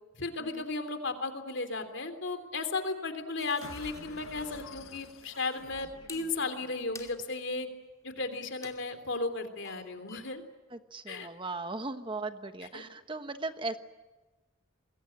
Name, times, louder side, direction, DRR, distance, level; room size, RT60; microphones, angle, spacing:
voice 1, 0.2-7.7 8.0-10.4 11.1-11.3 12.7-12.8, left 3 dB, 60° left, 9 dB, 3.4 m, -35 dB
sound 1, 3.4-4.9 5.2-6.6 6.9-9.3 9.6-10.2, left 4 dB, 15° left, 2.6 m, -52 dB
sound 2, 3.6-7.0, left 3 dB, 75° left, 1.7 m, -49 dB
voice 2, 10.7-13.8, right 3 dB, 25° right, 9 dB, 1.1 m, -37 dB
27.0 x 22.5 x 8.9 m, 1.2 s
head